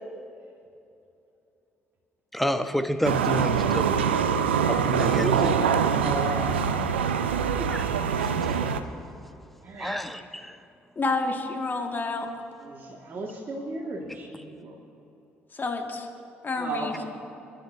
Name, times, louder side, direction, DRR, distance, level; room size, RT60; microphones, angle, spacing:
voice 1, 2.3-3.9 4.7-5.5 7.7-7.9 8.1-8.6 9.8-10.6 14.1-14.2, equal, 5° left, 8 dB, 1.2 m, -29 dB
sound 1, 3.0-8.8, right 7 dB, 85° right, 0.5 m, -24 dB
voice 2, 5.1-6.9 7.4-7.7 9.6-10.0 12.6-14.8 16.5-17.1, right 2 dB, 40° right, -3 dB, 2.0 m, -34 dB
voice 3, 11.0-12.3 15.5-16.1 16.4-16.9, left 3 dB, 35° left, 3 dB, 2.1 m, -29 dB
29.0 x 11.0 x 2.8 m, 2.7 s
figure-of-eight pair, 45°, 6 cm